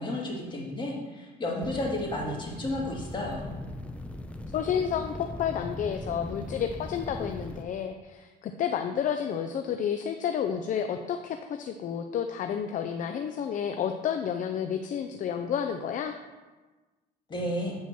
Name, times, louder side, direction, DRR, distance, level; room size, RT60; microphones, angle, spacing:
voice 1, 0.0-3.5 17.3-17.8, left 1 dB, 25° left, -3 dB, 2.4 m, -32 dB
sound 1, 1.6-7.6, left 1 dB, 5° left, 0.6 m, -40 dB
voice 2, 4.5-16.2, left 8 dB, 50° left, 6 dB, 0.5 m, -30 dB
8.6 x 4.4 x 6.0 m, 1.2 s
cardioid pair, 110°, 17 cm